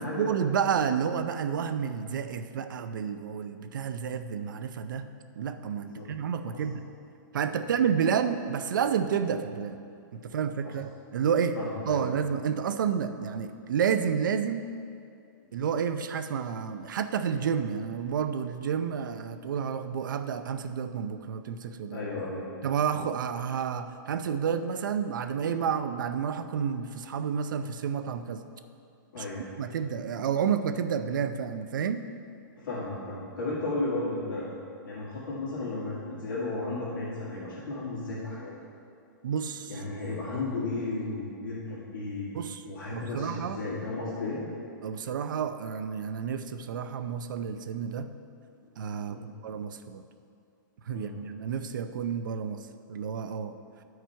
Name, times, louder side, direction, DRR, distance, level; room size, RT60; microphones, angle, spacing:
voice 1, 0.0-5.1 5.4-6.8 7.3-9.8 10.1-11.6 11.9-14.6 15.5-22.1 22.6-28.4 29.2-29.3 29.6-32.0 39.2-39.8 42.3-42.6 42.9-43.6 44.8-48.1 48.8-50.1 50.9-53.6, right 7 dB, 70° right, 9 dB, 0.5 m, -30 dB
voice 2, 11.5-12.0 21.9-22.4 29.1-29.4 32.6-34.5 34.8-38.5 39.7-42.3 42.6-44.4 49.1-49.3 50.9-51.2, left 2 dB, 80° left, -8 dB, 2.1 m, -34 dB
11.5 x 4.8 x 4.5 m, 2.4 s
hypercardioid pair, 180°, 11 cm